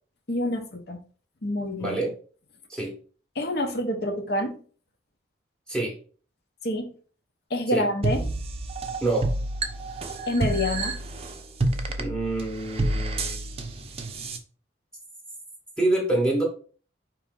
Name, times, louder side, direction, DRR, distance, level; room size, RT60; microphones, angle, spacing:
voice 1, 0.3-1.0 1.4-2.0 3.3-4.6 6.6-6.9 7.5-8.2 10.3-11.0, left 1 dB, 55° left, 4 dB, 0.8 m, -27 dB
voice 2, 1.8-2.1 2.7-2.9 5.7-6.0 7.7-7.8 9.0-9.3 12.0-13.5 15.8-16.4, right 2 dB, 5° left, -2 dB, 0.9 m, -26 dB
sound 1, 8.0-14.4, right 2 dB, 30° right, 0.5 m, -29 dB
4.9 x 3.0 x 3.6 m, 0.41 s
head